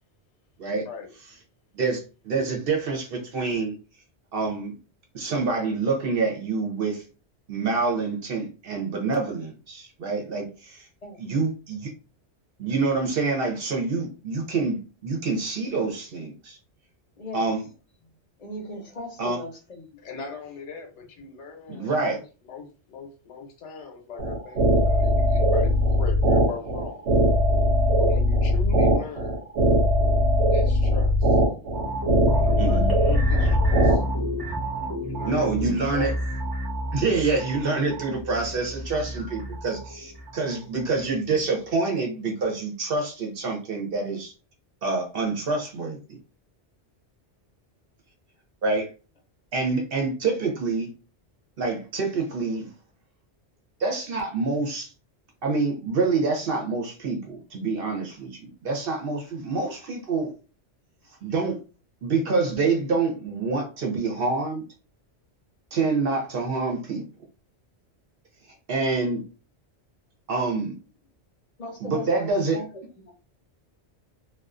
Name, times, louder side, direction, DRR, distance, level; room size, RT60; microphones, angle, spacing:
voice 1, 1.7-3.7 4.3-4.7 5.1-7.0 7.5-10.9 11.2-11.9 12.6-16.6 17.3-17.6 19.2-19.4 21.7-22.2 32.6-32.9 35.2-36.1 36.9-44.3 44.8-46.0 48.6-48.9 49.5-50.9 51.6-52.7 53.8-54.9 55.4-60.3 61.2-61.6 62.0-64.6 65.7-67.0 68.7-69.2 70.3-70.7 71.8-72.6, right 4 dB, 60° right, 0.9 m, -26 dB
voice 2, 17.2-17.5 18.4-20.0 71.6-72.6 73.0-73.1, left 1 dB, 40° left, 0.7 m, -38 dB
voice 3, 20.0-27.0 28.0-29.5 30.5-31.4 32.3-34.0 35.0-36.1, left 5 dB, 80° left, 1.0 m, -39 dB
sound 1, 24.2-34.0, equal, 85° right, 1.0 m, -20 dB
sound 2, 31.7-41.0 41.4-41.5, equal, 20° right, 0.8 m, -31 dB
2.4 x 2.3 x 2.4 m
omnidirectional pair, 1.2 m